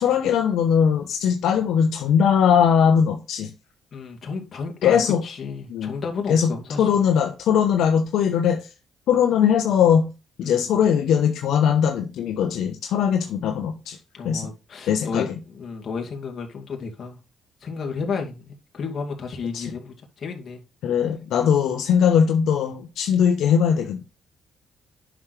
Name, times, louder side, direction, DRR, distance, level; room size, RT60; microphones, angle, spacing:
voice 1, 0.0-3.5 4.8-5.2 5.7-5.9 6.3-6.5 6.8-8.7 9.1-10.1 10.4-14.0 14.2-14.5 14.9-15.3 19.5-19.6 20.8-24.0, left 8 dB, 80° left, 0.9 m, -20 dB
voice 2, 3.9-6.9 10.4-10.7 14.1-17.2 17.6-20.6, left 5 dB, 50° left, 2.4 m, -32 dB
9.4 x 6.2 x 3.3 m
cardioid pair, 90°, 0 cm